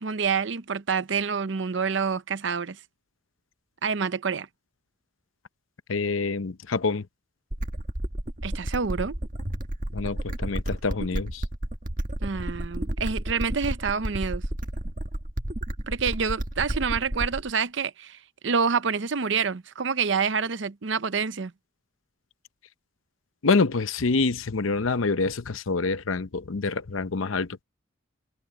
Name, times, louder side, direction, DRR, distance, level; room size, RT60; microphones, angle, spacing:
voice 1, 0.0-2.8 3.8-4.5 8.4-9.2 12.2-14.4 15.9-18.2 18.4-21.5, right 5 dB, 65° right, 0.7 m, -27 dB
voice 2, 5.9-7.0 9.9-11.4 23.4-27.5, left 4 dB, 85° left, 0.7 m, -26 dB
sound 1, 7.5-17.5, right 1 dB, 40° right, 1.6 m, -31 dB
head